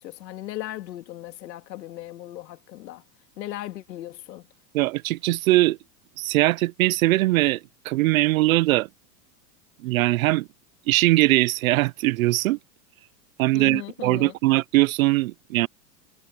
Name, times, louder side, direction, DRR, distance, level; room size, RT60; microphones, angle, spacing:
voice 1, 0.0-3.0 3.4-4.5 13.5-14.3, left 14 dB, 80° left, 2.7 m, -37 dB
voice 2, 4.7-5.8 6.2-8.9 9.8-10.5 10.9-12.6 13.4-15.7, right 19 dB, 55° right, 0.7 m, -21 dB
supercardioid pair, 160°, 50 cm